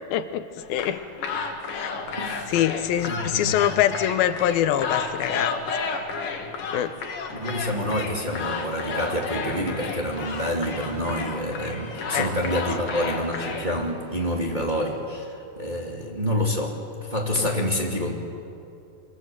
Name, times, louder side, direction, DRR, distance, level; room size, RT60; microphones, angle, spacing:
voice 1, 0.1-1.0 1.7-2.0 2.5-5.6 6.7-7.0 12.1-12.3 17.4-17.5, left 11 dB, 85° left, 11 dB, 2.7 m, -24 dB
sound 1, 0.6-13.7, left 5 dB, 65° left, 3.5 m, -32 dB
voice 2, 2.2-2.5 3.0-3.6 7.3-18.1, equal, 15° right, -1 dB, 2.2 m, -28 dB
sound 2, 7.5-15.1, right 7 dB, 75° right, 3.3 m, -43 dB
24.5 x 24.5 x 7.7 m, 2.6 s
omnidirectional pair, 4.3 m